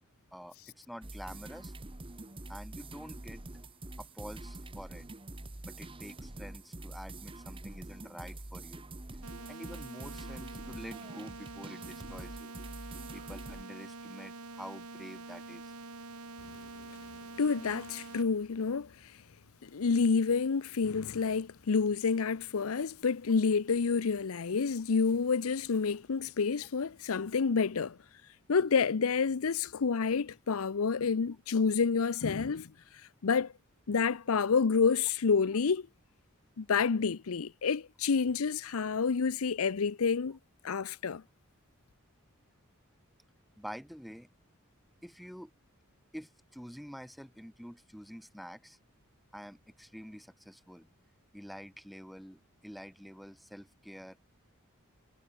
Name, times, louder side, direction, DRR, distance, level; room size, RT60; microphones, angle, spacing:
voice 1, 0.3-1.7 2.5-3.4 4.0-5.1 5.6-8.9 9.5-12.5 13.1-15.7 43.6-44.3 45.0-45.5 46.1-48.8 49.3-50.9 51.3-54.2, equal, ahead, 2.9 m, -47 dB
sound 1, 1.0-13.6, right 2 dB, 25° right, 1.2 m, -45 dB
sound 2, 9.2-18.2, right 3 dB, 90° right, 4.4 m, -46 dB
voice 2, 17.4-19.1 19.6-28.0 28.5-32.7 33.2-33.5 33.9-35.9 36.6-40.4 40.6-41.2, left 5 dB, 75° left, 0.6 m, -29 dB
head